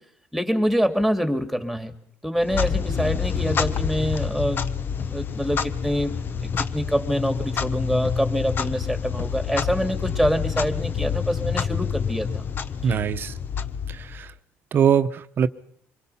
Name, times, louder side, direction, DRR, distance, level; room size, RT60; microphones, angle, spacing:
voice 1, 0.3-1.9 2.2-4.6 5.1-12.4 12.8-13.0, equal, ahead, 7 dB, 2.5 m, -25 dB
Clock, 2.4-14.3, left 7 dB, 45° left, 0.9 m, -27 dB
voice 2, 12.8-13.3 13.9-14.3 14.7-15.5, right 8 dB, 50° right, 11 dB, 1.0 m, -22 dB
25.5 x 22.5 x 5.7 m, 0.65 s
cardioid pair, 100°, 5 cm